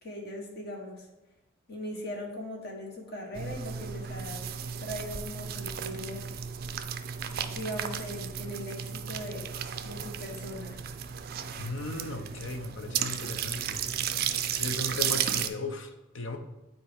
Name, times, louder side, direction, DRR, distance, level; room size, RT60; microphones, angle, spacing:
voice 1, 0.0-1.0 1.7-4.4 4.8-6.2 7.4-9.5 9.8-10.8, left 1 dB, 50° left, 0 dB, 1.4 m, -39 dB
sound 1, 3.3-15.5, right 8 dB, 45° right, 0.4 m, -34 dB
voice 2, 11.6-13.8 14.5-16.4, left 2 dB, 65° left, 6 dB, 0.8 m, -36 dB
8.8 x 4.3 x 3.6 m, 1.0 s
head